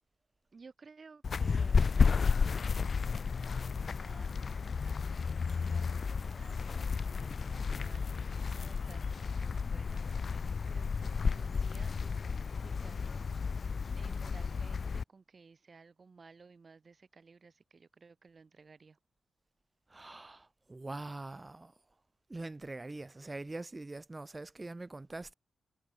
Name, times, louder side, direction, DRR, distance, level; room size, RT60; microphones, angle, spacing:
voice 1, 0.5-2.0 3.5-4.5 5.2-13.6 13.9-19.0, right 4 dB, 50° right, 6.4 m, -57 dB
sound 1, 1.2-15.0, left 5 dB, 55° left, 0.9 m, -32 dB
voice 2, 19.9-21.7 22.3-25.3, right 2 dB, 30° right, 3.7 m, -43 dB
supercardioid pair, 40°, 0 cm